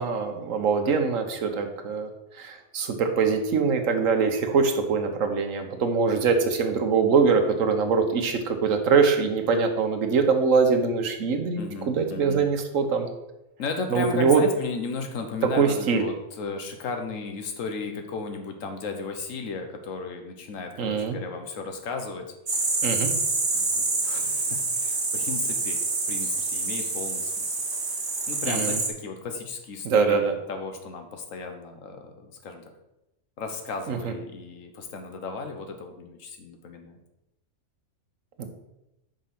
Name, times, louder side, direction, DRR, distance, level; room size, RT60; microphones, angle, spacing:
voice 1, 0.0-11.6 11.9-13.1 13.9-14.4 15.5-16.0 20.8-21.2 22.8-23.1 28.5-28.8 29.8-30.3 33.9-34.1 38.4-38.5, right 5 dB, 80° right, 5 dB, 1.3 m, -23 dB
voice 2, 11.6-12.5 13.6-22.6 23.5-25.8 26.1-27.6 28.3-32.7 33.4-37.0, left 4 dB, 80° left, 5 dB, 1.2 m, -35 dB
sound 1, 22.5-28.9, right 3 dB, 45° right, 1.2 m, -27 dB
5.1 x 5.0 x 5.8 m, 0.91 s
omnidirectional pair, 1.3 m